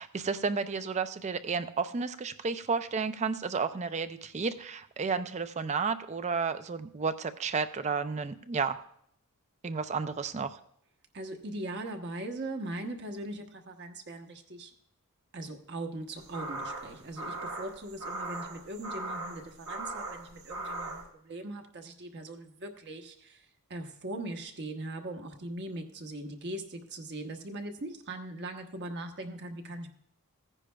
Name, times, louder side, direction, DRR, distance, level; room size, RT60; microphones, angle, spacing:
voice 1, 0.0-8.8 9.6-10.5, right 5 dB, 30° right, 11 dB, 0.4 m, -32 dB
voice 2, 11.1-14.7 15.3-23.4 23.7-29.9, right 1 dB, 50° right, 5 dB, 1.0 m, -40 dB
sound 1, 16.2-21.1, right 2 dB, 65° right, 1.5 m, -39 dB
15.5 x 9.9 x 2.3 m, 0.68 s
head